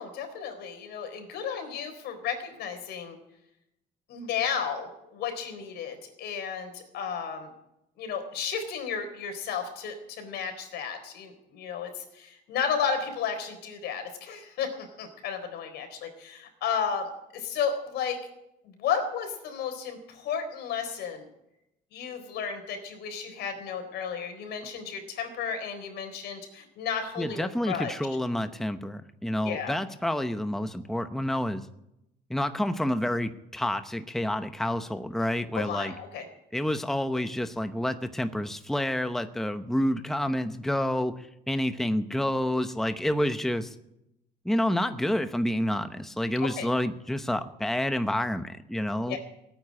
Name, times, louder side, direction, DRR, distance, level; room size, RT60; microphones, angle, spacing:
voice 1, 0.0-3.2 4.1-7.5 8.0-18.2 18.8-21.3 21.9-27.9 29.4-29.7 35.5-36.2 46.4-46.7 49.1-49.2, left 7 dB, 75° left, 6 dB, 4.1 m, -33 dB
voice 2, 27.2-31.7 32.3-35.9 36.5-43.7 44.4-49.2, left 1 dB, ahead, 9 dB, 0.8 m, -29 dB
17.0 x 9.4 x 8.8 m, 0.84 s
cardioid pair, 110°, 17 cm